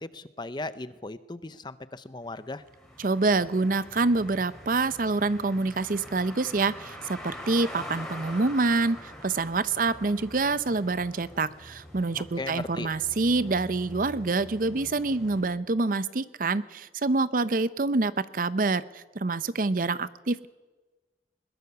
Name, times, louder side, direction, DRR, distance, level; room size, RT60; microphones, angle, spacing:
voice 1, 0.0-2.6 12.4-12.9, left 2 dB, 25° left, 13 dB, 0.8 m, -37 dB
sound 1, 2.2-15.4, equal, 5° left, 4.1 m, -44 dB
voice 2, 3.0-20.5, right 3 dB, 50° right, 15 dB, 0.7 m, -26 dB
21.5 x 21.0 x 7.0 m, 1.2 s
head